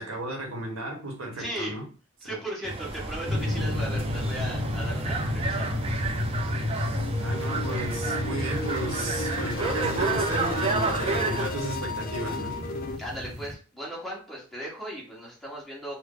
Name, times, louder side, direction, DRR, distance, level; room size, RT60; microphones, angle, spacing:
voice 1, 0.0-1.8 2.2-2.4 7.2-12.6, right 1 dB, 80° right, 1.0 m, -34 dB
voice 2, 1.4-1.7 2.2-5.8 13.0-16.0, equal, ahead, 1.2 m, -37 dB
sound 1, 2.6-11.5, right 3 dB, 30° right, 0.4 m, -31 dB
sound 2, 3.2-13.5, left 1 dB, 50° right, 0.8 m, -32 dB
sound 3, 6.9-13.0, left 2 dB, 40° left, 0.4 m, -34 dB
3.4 x 2.0 x 3.7 m
head